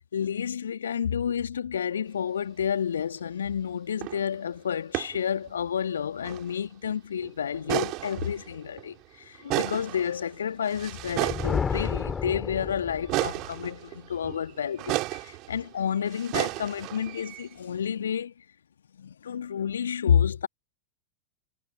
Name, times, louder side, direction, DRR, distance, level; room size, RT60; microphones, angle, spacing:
voice 1, 0.1-18.5 19.0-20.5, left 8 dB, 65° left, 2.4 m, -30 dB
sound 1, 4.0-4.4 4.9-5.2 5.5-5.6 6.2-6.6 6.8-6.9 7.2-9.0 9.3-12.5 13.1-17.5, right 21 dB, 40° right, 4.8 m, -33 dB
Thunder, 10.9-13.5, left 6 dB, 20° left, 5.9 m, -31 dB
figure-of-eight pair, 90°, 0 cm